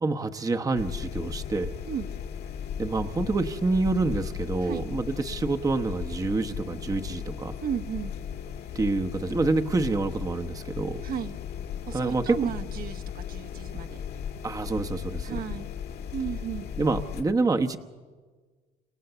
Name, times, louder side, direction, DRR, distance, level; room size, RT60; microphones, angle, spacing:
voice 1, 0.0-1.7 2.8-7.5 8.7-11.0 11.9-12.5 14.4-15.4 16.8-17.8, right 3 dB, 20° right, 5 dB, 1.0 m, -27 dB
sound 1, 0.7-17.2, left 8 dB, 65° left, 2.2 m, -36 dB
voice 2, 7.6-8.1 11.0-11.3 11.9-14.0 15.2-15.7 16.1-16.7, right 8 dB, 60° right, 6 dB, 1.4 m, -34 dB
28.0 x 27.5 x 7.0 m, 1.4 s
cardioid pair, 110°, 17 cm